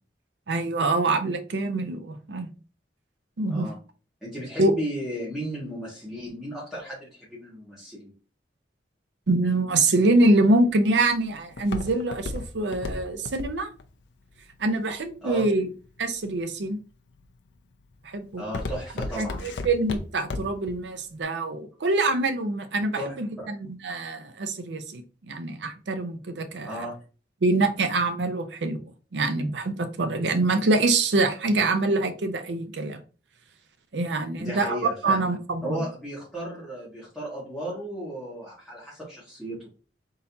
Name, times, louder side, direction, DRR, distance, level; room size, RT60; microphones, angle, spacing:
voice 1, 0.5-2.5 3.4-3.7 4.6-4.8 9.3-13.7 14.6-15.7 16.0-16.8 18.0-18.4 19.2-26.9 27.4-28.8 29.1-33.0 33.9-35.8, right 2 dB, 85° right, 0.6 m, -25 dB
voice 2, 4.2-8.1 15.2-15.5 18.4-19.4 22.7-23.5 26.6-26.9 34.4-35.2 35.6-39.6, equal, ahead, 1.8 m, -35 dB
Walk footsteps, 10.4-15.6 16.2-16.6 17.1-17.5 17.8-20.7 21.0-21.1, left 2 dB, 90° left, 0.6 m, -34 dB
4.0 x 3.9 x 2.8 m
head